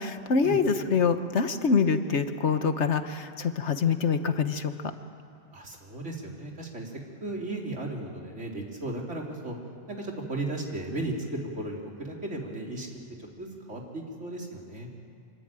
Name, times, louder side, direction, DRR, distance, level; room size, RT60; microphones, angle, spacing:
voice 1, 0.0-4.7, left 5 dB, 70° left, 9 dB, 1.5 m, -25 dB
voice 2, 5.5-6.9 7.2-9.6 9.9-12.9 13.2-14.9, right 2 dB, 85° right, 0 dB, 3.7 m, -35 dB
26.0 x 22.0 x 9.1 m, 2.4 s
omnidirectional pair, 1.2 m